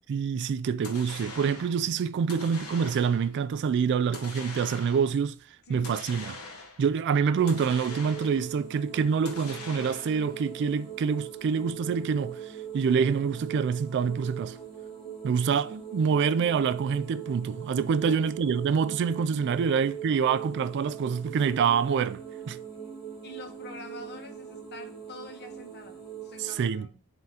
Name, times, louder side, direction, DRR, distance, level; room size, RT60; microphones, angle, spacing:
voice 1, 0.1-5.3 5.7-6.4 6.8-12.4 12.7-14.6 15.2-22.6 26.4-26.9, right 6 dB, 50° right, 0.3 m, -26 dB
sound 1, 0.8-1.8 2.3-3.3 4.1-5.2 5.8-6.9 7.5-8.6 9.3-10.3, left 3 dB, 85° left, 1.3 m, -43 dB
voice 2, 2.2-2.9 5.7-6.0 16.0-16.2 18.0-18.5 19.6-19.8 23.2-27.0, left 2 dB, 50° left, 1.1 m, -47 dB
sound 2, 7.3-26.5, right 8 dB, ahead, 2.8 m, -41 dB
10.5 x 3.6 x 2.9 m
head